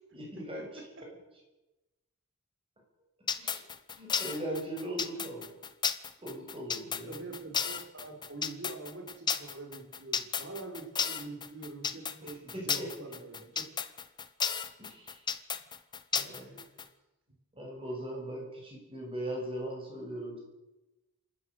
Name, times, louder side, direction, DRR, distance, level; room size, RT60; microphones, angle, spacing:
voice 1, 0.1-0.7 3.4-3.6 3.9-5.5 6.2-7.1 12.2-12.9 14.8-15.2 16.1-16.7 17.5-20.4, right 1 dB, 25° right, 0 dB, 7.0 m, -39 dB
sound 1, 3.3-16.8, left 6 dB, 20° left, 0.9 m, -33 dB
voice 2, 7.1-13.7 16.3-16.6, right 3 dB, 60° right, 4 dB, 4.7 m, -45 dB
27.5 x 13.5 x 8.1 m, 1.1 s
head